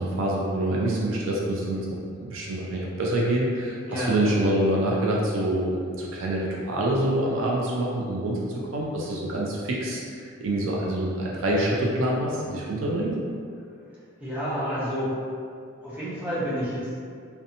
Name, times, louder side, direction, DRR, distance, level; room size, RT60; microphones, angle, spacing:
voice 1, 0.0-1.9 2.2-8.5 8.7-13.1, right 1 dB, 65° right, -3 dB, 0.4 m, -26 dB
voice 2, 14.2-15.2 15.8-16.9, equal, 10° right, -11 dB, 0.7 m, -29 dB
2.7 x 2.1 x 2.6 m, 2.3 s
head